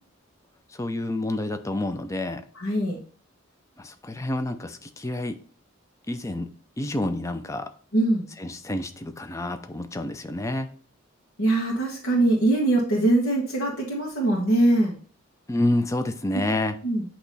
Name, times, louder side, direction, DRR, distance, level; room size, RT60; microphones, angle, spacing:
voice 1, 0.7-2.4 3.8-5.4 6.1-6.5 6.8-7.7 8.4-10.7 15.5-16.7, left 1 dB, 15° left, 8 dB, 0.4 m, -28 dB
voice 2, 2.5-3.0 7.9-8.3 11.4-14.9 16.8-17.0, right 1 dB, 85° left, -2 dB, 1.3 m, -22 dB
8.2 x 3.0 x 4.0 m, 0.43 s
head